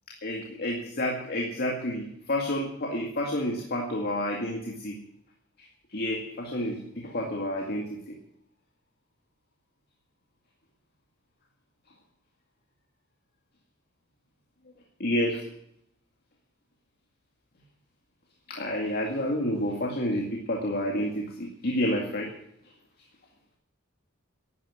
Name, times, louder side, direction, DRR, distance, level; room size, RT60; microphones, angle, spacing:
voice 1, 0.2-5.0 5.9-8.2 15.0-15.4 18.5-22.3, left 1 dB, 50° left, 0 dB, 2.1 m, -29 dB
12.0 x 9.7 x 9.1 m, 0.75 s
head